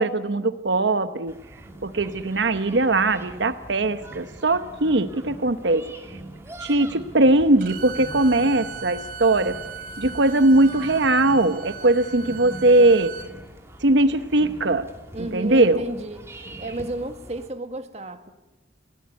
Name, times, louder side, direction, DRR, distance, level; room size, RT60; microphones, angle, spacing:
voice 1, 0.0-1.3 1.8-5.9 6.6-9.6 10.0-13.1 13.8-14.9 15.2-15.9, right 2 dB, 80° right, 11 dB, 1.0 m, -20 dB
sound 1, 1.3-17.5, right 1 dB, 15° right, 2.7 m, -45 dB
sound 2, 1.6-17.3, right 1 dB, 20° left, 7.1 m, -45 dB
Bowed string instrument, 7.6-13.3, right 6 dB, 55° right, 3.6 m, -38 dB
voice 2, 15.1-18.3, right 2 dB, 35° right, 7 dB, 1.9 m, -32 dB
29.5 x 18.5 x 9.6 m, 1.1 s
head